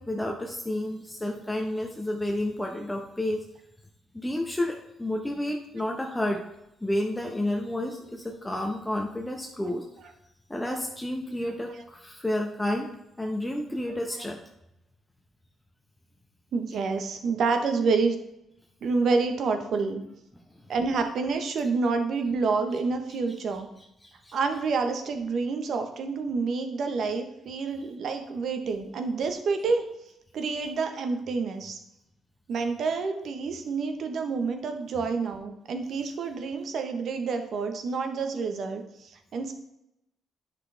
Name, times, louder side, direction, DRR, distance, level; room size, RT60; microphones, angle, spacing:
voice 1, 0.0-3.4 4.1-6.4 6.8-9.8 10.5-12.9 13.2-14.4 24.0-24.4, left 1 dB, 10° left, 1 dB, 1.1 m, -30 dB
voice 2, 16.5-18.1 18.8-20.0 20.7-23.7 24.3-29.8 30.3-31.8 32.5-39.5, right 4 dB, 65° right, 6 dB, 1.2 m, -28 dB
10.5 x 5.9 x 3.4 m, 0.84 s
cardioid pair, 90°, 0 cm